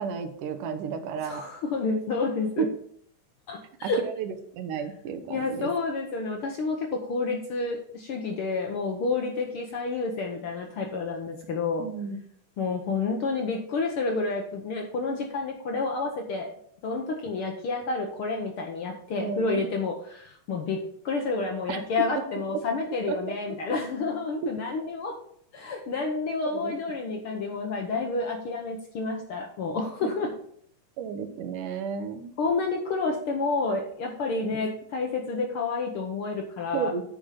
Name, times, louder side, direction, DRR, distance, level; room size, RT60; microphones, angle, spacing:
voice 1, 0.0-1.5 2.6-2.7 3.8-5.7 11.8-12.2 19.2-19.6 21.7-21.8 23.1-23.6 26.5-26.7 30.0-30.1 31.0-32.3 34.3-34.6 36.7-37.0, right 6 dB, 90° right, 9 dB, 2.5 m, -32 dB
voice 2, 1.2-2.7 3.5-4.0 5.3-11.8 12.6-16.5 16.8-25.2 25.5-30.3 32.4-36.9, left 3 dB, 65° left, 2 dB, 1.4 m, -29 dB
8.3 x 5.3 x 5.7 m, 0.64 s
omnidirectional pair, 3.6 m